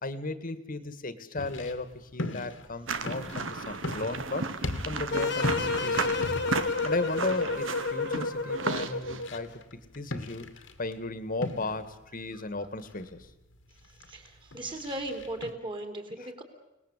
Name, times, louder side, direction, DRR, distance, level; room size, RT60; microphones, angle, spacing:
voice 1, 0.0-4.4 4.9-6.2 6.8-9.6 10.0-10.5 10.8-13.3 16.2-16.3, left 2 dB, 45° left, 13 dB, 1.9 m, -35 dB
sound 1, 1.4-15.5, left 2 dB, 80° left, 2.3 m, -40 dB
sound 2, 2.9-9.2, right 4 dB, 90° right, 1.6 m, -34 dB
sound 3, 5.1-9.4, left 4 dB, 65° left, 1.4 m, -30 dB
voice 2, 14.1-16.4, right 1 dB, 25° right, 6 dB, 3.8 m, -37 dB
29.5 x 19.5 x 8.3 m, 0.95 s
head